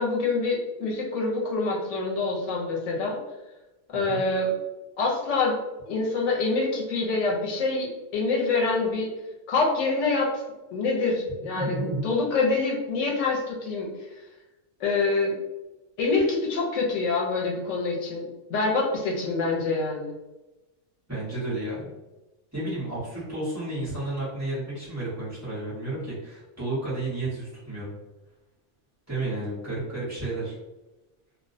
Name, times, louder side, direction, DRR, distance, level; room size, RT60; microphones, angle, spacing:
voice 1, 0.0-3.2 3.9-4.5 5.0-9.1 9.5-10.4 10.7-11.8 12.0-13.9 14.8-15.4 16.0-20.1, left 3 dB, 80° left, -1 dB, 0.9 m, -26 dB
voice 2, 3.9-4.2 11.5-12.0 21.1-21.9 22.5-27.9 29.1-30.6, right 2 dB, 15° right, -11 dB, 0.9 m, -32 dB
2.3 x 2.1 x 2.5 m, 1.1 s
omnidirectional pair, 1.3 m